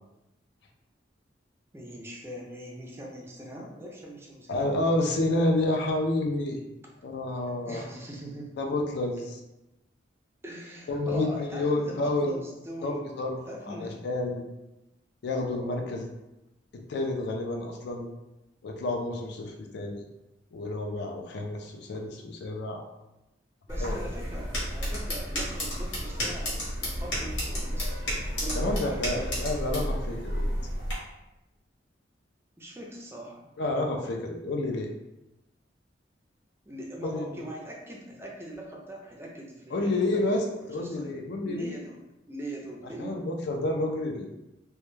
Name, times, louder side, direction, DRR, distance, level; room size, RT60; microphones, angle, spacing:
voice 1, 1.7-4.7 7.6-8.5 10.4-13.0 13.5-14.0 23.7-29.4 32.6-33.5 36.7-40.4 40.8-41.1 41.4-42.0 42.3-43.2, right 1 dB, 15° right, -2 dB, 0.4 m, -41 dB
voice 2, 4.5-6.6 7.0-7.8 8.6-9.4 10.9-12.4 12.8-13.4 13.7-14.4 15.2-16.1 16.7-18.1 18.6-20.0 20.5-22.8 23.8-24.0 28.5-30.4 33.6-34.9 37.0-37.3 39.7-41.8 43.0-44.3, left 2 dB, 65° left, 2 dB, 0.4 m, -29 dB
sound 1, 23.7-30.9, equal, 85° left, 1.1 m, -31 dB
2.1 x 2.1 x 3.1 m, 0.95 s
head